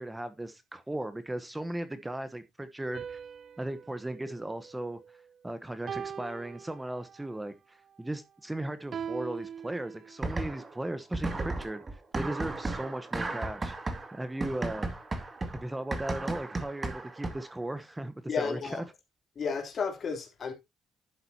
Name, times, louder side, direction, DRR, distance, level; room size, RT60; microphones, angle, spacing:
voice 1, 0.0-3.2 3.6-5.0 5.4-13.7 14.1-14.9 15.5-18.8, right 1 dB, 10° right, 1.1 m, -37 dB
sound 1, 2.9-5.3 5.9-7.3 8.9-10.4, right 7 dB, 55° right, 0.5 m, -42 dB
sound 2, 10.2-10.8 11.1-17.6, right 2 dB, 30° right, 2.3 m, -35 dB
voice 2, 18.3-18.8 19.3-20.5, left 5 dB, 50° left, 3.3 m, -32 dB
11.5 x 7.8 x 2.8 m
cardioid pair, 90°, 0 cm